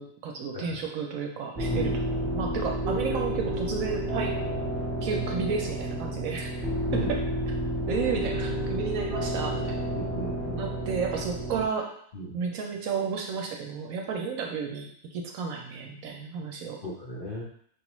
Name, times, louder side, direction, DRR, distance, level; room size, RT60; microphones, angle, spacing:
voice 1, 0.0-4.3 5.0-6.5 6.9-7.2 7.9-9.9 10.6-11.9 12.3-16.8, right 6 dB, 70° right, 2 dB, 0.9 m, -32 dB
sound 1, 1.6-11.7, right 1 dB, 25° right, 0.8 m, -30 dB
voice 2, 9.9-10.6 12.1-12.4 16.8-17.4, equal, 55° left, -6 dB, 0.6 m, -35 dB
4.9 x 2.3 x 3.0 m, 0.64 s
omnidirectional pair, 1.6 m